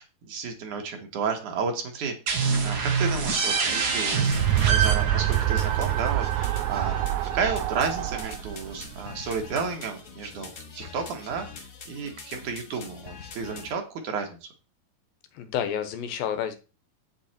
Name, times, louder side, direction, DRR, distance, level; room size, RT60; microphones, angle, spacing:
voice 1, 0.0-2.1 2.6-4.2 4.6-7.0 7.3-10.5 10.8-14.4, right 5 dB, 65° right, 3 dB, 2.9 m, -32 dB
sound 1, 2.3-7.7, right 5 dB, 50° right, 1.2 m, -27 dB
sound 2, 3.9-9.5, right 14 dB, 85° right, 1.7 m, -26 dB
sound 3, 4.2-13.7, left 5 dB, 65° left, 0.9 m, -44 dB
voice 2, 15.3-16.6, left 9 dB, 85° left, 9 dB, 2.9 m, -29 dB
8.5 x 6.5 x 4.4 m, 0.32 s
omnidirectional pair, 4.0 m